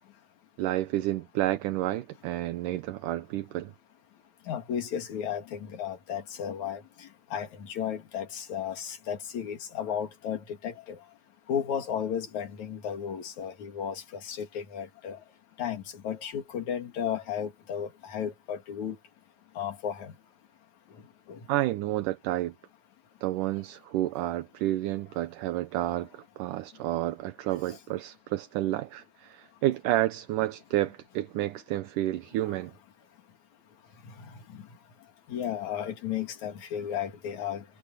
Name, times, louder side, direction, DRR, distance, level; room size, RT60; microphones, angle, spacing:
voice 1, 0.6-3.7 21.5-22.5 23.2-32.7, right 15 dB, 75° right, 2.4 m, -30 dB
voice 2, 4.5-11.0 11.5-15.2 15.6-19.0 19.6-20.1 21.3-21.4 34.2-34.7 35.3-37.6, left 8 dB, 60° left, 3.4 m, -34 dB
omnidirectional pair, 3.8 m